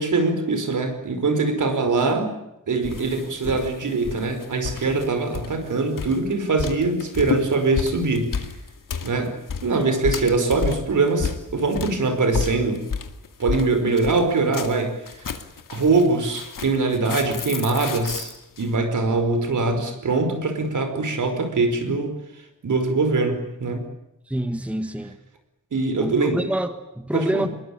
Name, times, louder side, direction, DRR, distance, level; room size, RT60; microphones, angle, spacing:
voice 1, 0.0-2.3 2.7-8.4 9.0-9.3 9.6-12.9 13.4-15.4 15.7-18.3 18.6-22.2 22.6-23.8 25.7-26.4 27.1-27.5, right 3 dB, 70° right, 5.2 m, -22 dB
sound 1, 2.8-18.7, left 6 dB, 85° left, 2.4 m, -31 dB
voice 2, 24.3-25.2 26.0-27.5, right 1 dB, 5° right, 1.3 m, -26 dB
26.5 x 22.0 x 8.9 m
wide cardioid pair, 155°, 32 cm